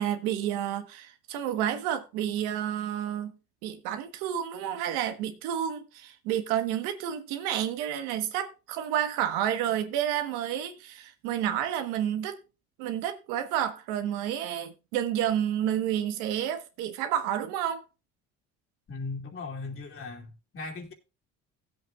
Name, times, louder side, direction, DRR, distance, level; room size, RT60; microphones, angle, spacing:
voice 1, 0.0-3.3 3.6-12.4 12.8-17.8, right 10 dB, 90° right, 1.3 m, -30 dB
voice 2, 18.9-20.9, left 3 dB, 45° left, 2.9 m, -38 dB
16.5 x 7.9 x 2.4 m
supercardioid pair, 90°, 31 cm